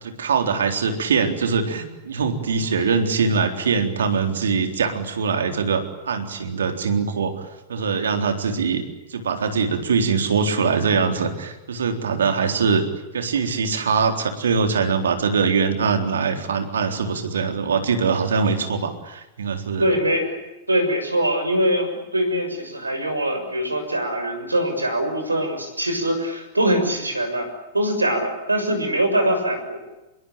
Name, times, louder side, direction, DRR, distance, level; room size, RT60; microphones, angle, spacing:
voice 1, 0.0-8.8 9.1-12.9 13.1-19.8, right 5 dB, 70° right, 6 dB, 3.9 m, -22 dB
voice 2, 19.8-20.4 20.7-27.5 27.7-29.9, right 1 dB, 85° right, 7 dB, 6.7 m, -23 dB
26.5 x 23.0 x 8.8 m, 1.0 s
figure-of-eight pair, 95°, 0 cm